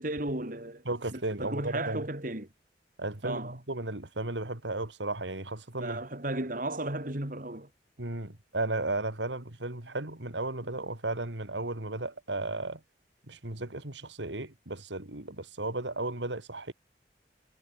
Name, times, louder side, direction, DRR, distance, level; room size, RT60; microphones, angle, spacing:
voice 1, 0.0-0.8 1.1-2.5 3.2-3.5 5.8-7.7, right 1 dB, 50° right, 2.9 m, -34 dB
voice 2, 0.8-2.0 3.0-6.0 8.0-12.8 13.3-16.7, right 2 dB, 85° right, 3.0 m, -34 dB
head